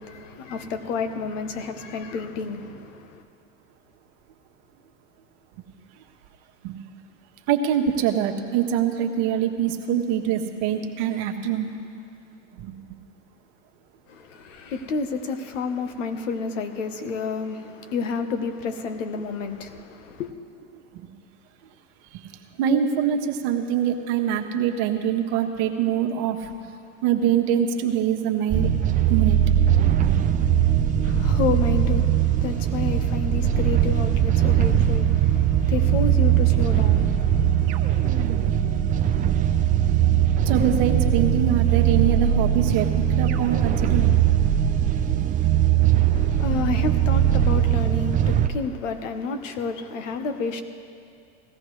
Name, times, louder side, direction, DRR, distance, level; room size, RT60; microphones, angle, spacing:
voice 1, 0.0-3.2 14.1-20.3 31.0-37.8 46.1-50.6, left 4 dB, 80° left, 1.2 m, -30 dB
voice 2, 7.5-11.7 12.6-12.7 20.9-21.1 22.1-22.2 22.6-26.5 27.0-28.7 29.1-29.4 29.8-29.9 40.5-44.1 45.1-45.3, right 9 dB, 60° right, 1.3 m, -24 dB
sound 1, 28.5-48.5, right 10 dB, 20° right, 0.5 m, -20 dB
sound 2, 37.7-40.2 43.3-44.3, right 7 dB, 40° right, 1.4 m, -39 dB
18.0 x 14.0 x 3.2 m
supercardioid pair, 115°, 37 cm